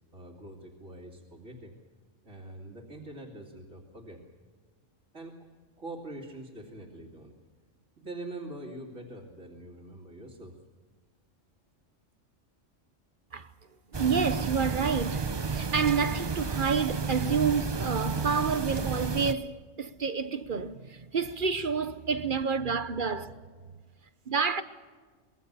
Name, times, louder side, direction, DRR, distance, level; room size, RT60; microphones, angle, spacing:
voice 1, 0.1-1.8 2.2-4.2 5.1-5.5 5.8-7.3 8.0-10.6, right 1 dB, 65° right, 3.1 m, -44 dB
sound 1, 13.9-19.3, right 5 dB, 30° right, 0.5 m, -31 dB
voice 2, 14.0-23.4 24.3-24.6, right 5 dB, 45° right, 1.0 m, -29 dB
26.5 x 21.0 x 6.8 m
omnidirectional pair, 1.3 m